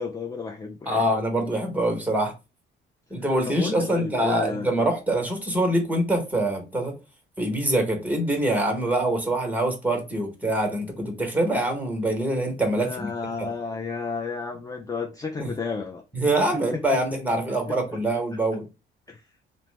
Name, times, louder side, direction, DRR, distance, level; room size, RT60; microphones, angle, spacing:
voice 1, 0.0-1.0 3.2-4.7 12.8-16.0 16.7-16.8 19.1-19.2, left 4 dB, 20° left, 0.4 m, -32 dB
voice 2, 0.9-2.3 3.1-7.0 7.4-13.1 13.4-13.5 15.4-15.5 16.1-18.6, right 1 dB, 10° right, 1.0 m, -24 dB
2.8 x 2.0 x 3.2 m
cardioid pair, 90°, 20 cm